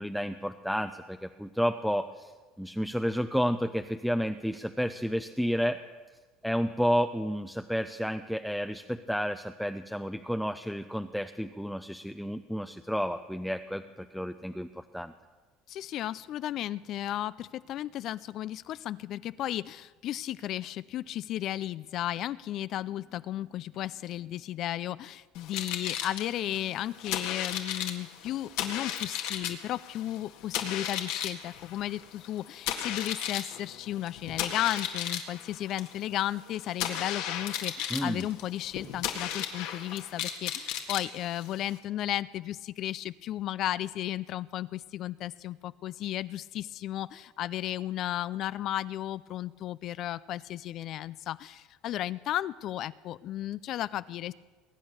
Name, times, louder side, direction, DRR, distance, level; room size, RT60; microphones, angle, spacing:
voice 1, 0.0-2.3 2.6-5.8 6.4-15.1 37.9-38.2, equal, ahead, 7 dB, 0.5 m, -31 dB
voice 2, 15.7-54.3, left 13 dB, 55° left, 17 dB, 0.4 m, -34 dB
sound 1, 25.3-41.8, left 10 dB, 80° left, 1.7 m, -35 dB
21.5 x 8.9 x 6.5 m, 1.4 s
supercardioid pair, 105°, 0 cm